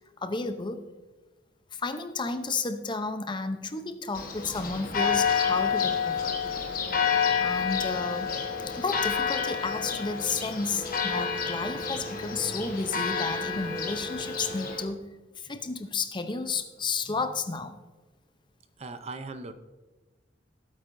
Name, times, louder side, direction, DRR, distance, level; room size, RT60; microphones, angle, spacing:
voice 1, 0.2-0.8 1.7-6.4 7.4-8.4 8.7-15.1 15.4-17.8, left 4 dB, 25° left, 8 dB, 0.6 m, -32 dB
Church bell, 4.1-14.8, left 6 dB, 50° left, 1.2 m, -29 dB
voice 2, 18.8-19.5, right 3 dB, 35° right, 9 dB, 0.6 m, -39 dB
16.0 x 8.4 x 2.6 m, 1.2 s
head